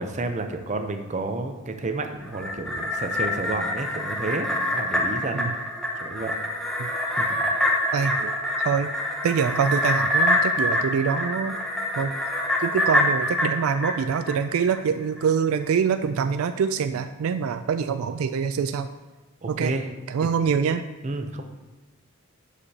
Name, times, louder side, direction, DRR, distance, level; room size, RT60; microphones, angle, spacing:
voice 1, 0.0-5.5 6.0-6.4 7.2-7.3 19.4-19.9 20.2-20.3 21.0-21.4, right 2 dB, 35° right, 6 dB, 0.6 m, -30 dB
sound 1, 2.2-14.8 15.2-15.3, left 1 dB, ahead, 0.9 m, -25 dB
voice 2, 7.9-8.4 8.6-8.9 9.2-11.6 12.0-12.1 12.6-18.9 19.5-19.8 20.1-20.9, right 6 dB, 70° right, 10 dB, 0.3 m, -25 dB
11.5 x 5.0 x 2.8 m, 1.2 s
head